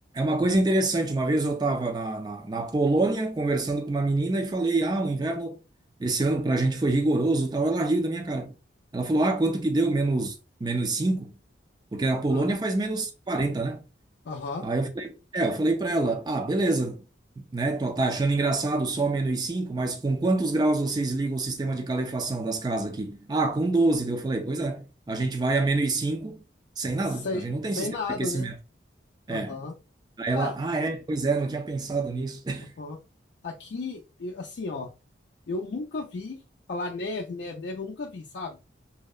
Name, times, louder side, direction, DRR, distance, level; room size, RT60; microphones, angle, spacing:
voice 1, 0.1-5.6 6.0-8.5 8.9-10.3 10.6-11.3 11.9-13.8 14.6-17.0 17.4-26.4 26.8-28.5 29.3-29.6 30.2-32.7, right 2 dB, 20° right, 0.3 m, -26 dB
voice 2, 14.2-14.7 27.1-28.5 29.3-29.8 30.3-30.5 32.6-33.0 33.4-34.9 35.5-36.4 36.7-38.6, left 3 dB, 65° left, 0.4 m, -34 dB
2.7 x 2.1 x 2.3 m
head